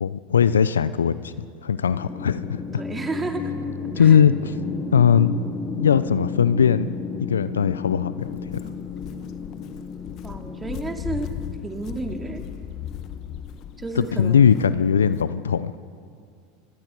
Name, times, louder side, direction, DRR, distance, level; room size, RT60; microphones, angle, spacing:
voice 1, 0.0-1.3 1.6-2.6 4.0-4.5 4.9-5.3 5.8-6.9 7.2-8.4 13.9-15.8, left 7 dB, 85° left, 15 dB, 0.6 m, -19 dB
sound 1, 1.9-14.1, left 5 dB, 20° left, 4.0 m, -33 dB
voice 2, 2.8-3.5 3.9-4.2 10.2-11.3 11.6-12.4 13.8-14.6, right 3 dB, 15° right, 4 dB, 2.6 m, -31 dB
Walk footsteps, 8.2-15.2, left 12 dB, 50° left, 1.1 m, -38 dB
27.0 x 22.5 x 4.7 m, 2.2 s
hypercardioid pair, 85°, 0 cm